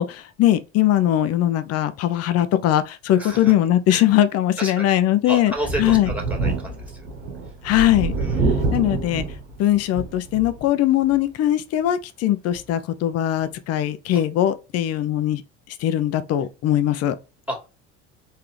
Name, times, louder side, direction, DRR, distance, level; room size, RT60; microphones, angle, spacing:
voice 1, 0.0-5.5 5.8-6.1 7.6-8.1 8.7-9.2 9.6-15.4 15.8-17.2, left 12 dB, 45° left, 0.6 m, -20 dB
voice 2, 3.2-3.5 3.9-4.0 4.6-5.0 5.3-7.0 8.2-8.4 14.1-14.2 17.5-17.7, right 1 dB, 5° right, 1.9 m, -31 dB
Thunder, 5.5-10.7 11.1-11.2 12.5-12.6, right 3 dB, 80° right, 1.1 m, -26 dB
3.9 x 2.7 x 3.2 m
hypercardioid pair, 65°, 35 cm